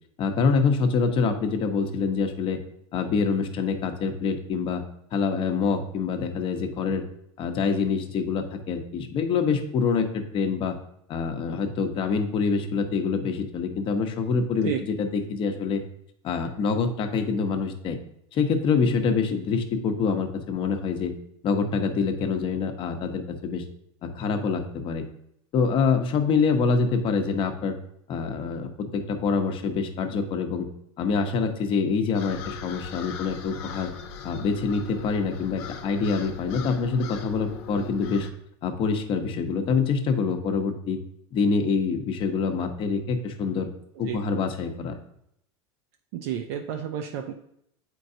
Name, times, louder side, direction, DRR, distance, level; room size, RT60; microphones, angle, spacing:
voice 1, 0.2-2.6 2.9-4.8 5.1-7.0 7.4-10.8 11.1-15.8 16.2-18.0 18.3-21.1 21.4-23.6 24.0-25.0 25.5-27.7 28.1-30.7 31.0-33.9 34.2-38.3 38.6-41.0 41.3-43.7 44.0-45.0, left 5 dB, 40° left, 6 dB, 0.8 m, -25 dB
sound 1, 32.1-38.3, left 7 dB, 70° left, 0.8 m, -39 dB
voice 2, 46.1-47.3, right 9 dB, 65° right, 4 dB, 0.5 m, -31 dB
7.6 x 4.6 x 2.7 m, 0.73 s
supercardioid pair, 130°, 14 cm